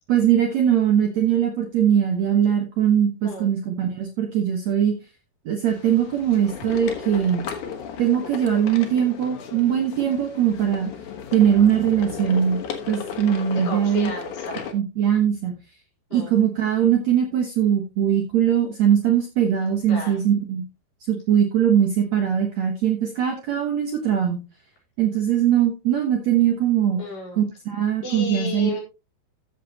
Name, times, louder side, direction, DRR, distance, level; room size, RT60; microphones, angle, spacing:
voice 1, 0.1-4.9 5.4-7.5 8.0-10.9 11.3-12.6 12.9-14.1 14.7-15.6 16.1-20.6 21.1-24.4 25.0-27.0 27.3-28.7, right 9 dB, 85° right, 3 dB, 1.5 m, -21 dB
sound 1, 5.7-14.7, left 7 dB, 60° left, 2.1 m, -35 dB
voice 2, 13.5-14.6 16.1-16.3 19.9-20.2 27.0-27.4 28.0-28.8, left 2 dB, 35° left, -3 dB, 4.7 m, -32 dB
14.0 x 7.4 x 2.9 m, 0.28 s
omnidirectional pair, 5.3 m